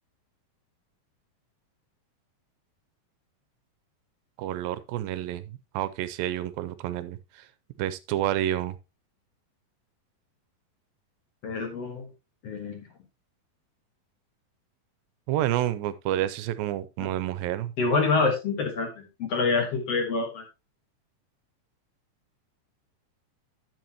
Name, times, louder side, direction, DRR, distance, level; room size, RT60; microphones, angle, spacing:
voice 1, 4.4-7.4 7.8-8.8 15.3-17.7, right 12 dB, 85° right, 2.4 m, -29 dB
voice 2, 11.4-12.1 12.4-12.9 17.0-17.1 17.8-20.4, left 4 dB, 55° left, 2.0 m, -26 dB
10.5 x 7.5 x 2.9 m
omnidirectional pair, 4.1 m